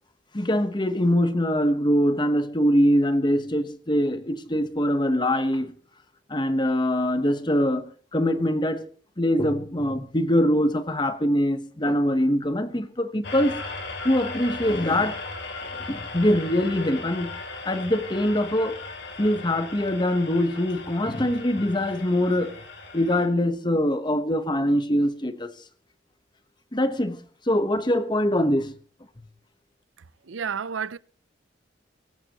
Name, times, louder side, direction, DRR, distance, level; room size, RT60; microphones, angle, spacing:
voice 1, 0.3-5.7 6.3-8.9 9.2-13.5 14.0-15.2 15.9-17.4 17.7-18.8 19.2-22.6 22.9-25.5 26.7-28.7, equal, 25° left, 1.2 m, -23 dB
sound 1, 13.2-23.3, left 3 dB, 65° left, 3.2 m, -37 dB
voice 2, 30.3-31.0, right 6 dB, 90° right, 0.6 m, -30 dB
24.5 x 13.5 x 3.0 m
head